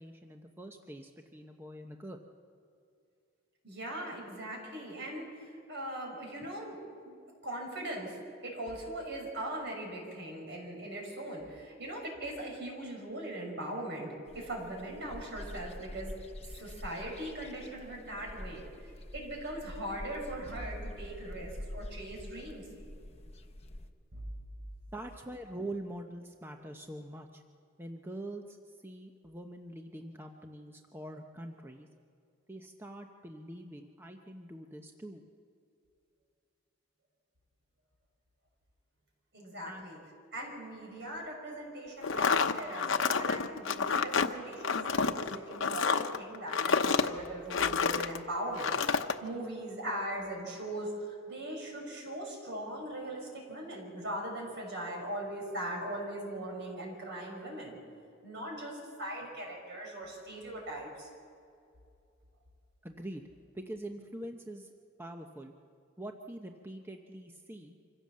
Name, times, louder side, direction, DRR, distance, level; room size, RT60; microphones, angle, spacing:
voice 1, 0.0-2.2 6.4-6.5 24.9-27.4 27.8-31.9 32.5-35.2 39.6-39.8 62.8-63.2 63.5-64.7 65.0-65.5 66.0-67.8, right 1 dB, 10° right, 3 dB, 0.8 m, -44 dB
voice 2, 3.6-6.8 7.0-7.2 7.4-16.1 16.4-18.6 19.1-22.7 24.1-24.2 39.3-40.0 40.3-48.7 49.2-57.8 58.2-61.1, right 1 dB, 60° right, 0 dB, 6.0 m, -40 dB
sound 1, 14.3-23.9, left 1 dB, 30° left, 1.0 m, -46 dB
sound 2, 42.0-48.2 48.6-49.2, left 5 dB, 80° left, 0.9 m, -29 dB
25.5 x 16.0 x 7.5 m, 2.4 s
head